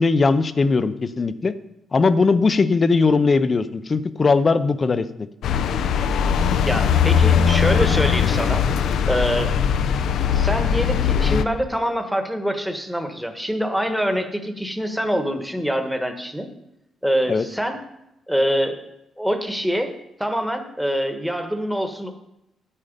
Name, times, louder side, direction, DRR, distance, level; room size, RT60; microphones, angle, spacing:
voice 1, 0.0-1.5 1.9-5.1 17.3-17.4, left 4 dB, 30° left, 13 dB, 0.6 m, -19 dB
sound 1, 5.4-11.4, left 7 dB, 75° left, 0.6 m, -20 dB
voice 2, 6.6-8.6 9.1-9.5 10.3-16.5 17.0-17.8 18.3-18.8 19.2-19.9 20.2-22.1, equal, ahead, 6 dB, 1.2 m, -25 dB
9.9 x 9.7 x 5.2 m, 0.88 s
cardioid pair, 130°, 0 cm